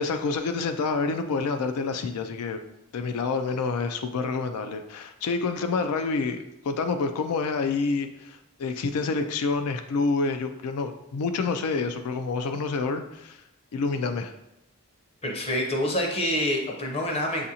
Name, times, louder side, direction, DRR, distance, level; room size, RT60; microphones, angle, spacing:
voice 1, 0.0-2.6 2.9-13.4 13.7-14.3, left 4 dB, 90° left, 7 dB, 0.4 m, -28 dB
voice 2, 15.2-17.5, left 1 dB, 25° left, 1 dB, 0.6 m, -27 dB
6.7 x 2.5 x 2.8 m, 0.88 s
head